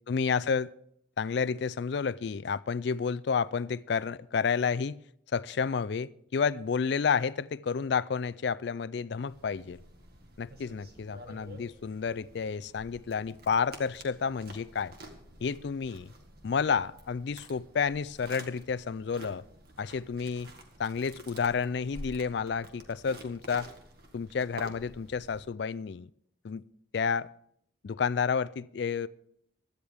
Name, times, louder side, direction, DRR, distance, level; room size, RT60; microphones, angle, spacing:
voice 1, 0.1-0.7 1.2-5.0 5.3-9.8 10.4-14.9 15.4-16.1 16.4-19.4 19.8-20.5 20.8-23.7 24.1-26.1 26.4-26.6 26.9-27.3 27.8-29.1, left 6 dB, 60° left, 0.4 m, -30 dB
sound 1, 9.3-25.5, right 1 dB, 50° right, 1.9 m, -50 dB
16.5 x 13.0 x 3.5 m
head